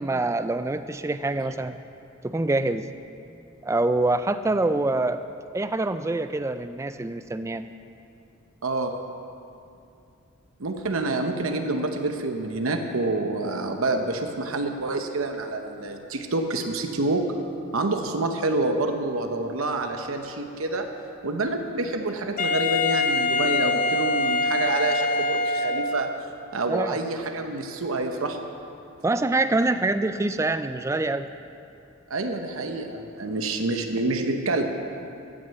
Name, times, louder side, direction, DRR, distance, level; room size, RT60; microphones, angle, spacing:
voice 1, 0.0-1.8 2.2-2.9 3.6-5.2 5.5-7.7 26.7-27.0 29.0-31.3, right 2 dB, 15° right, 11 dB, 0.3 m, -25 dB
voice 2, 8.6-8.9 10.6-17.3 17.7-20.9 21.2-26.1 26.5-28.4 32.1-34.6, right 2 dB, 90° right, 5 dB, 0.9 m, -27 dB
Wind instrument woodwind instrument, 22.4-26.3, left 3 dB, 40° left, 0.5 m, -24 dB
13.0 x 6.5 x 8.1 m, 2.6 s
head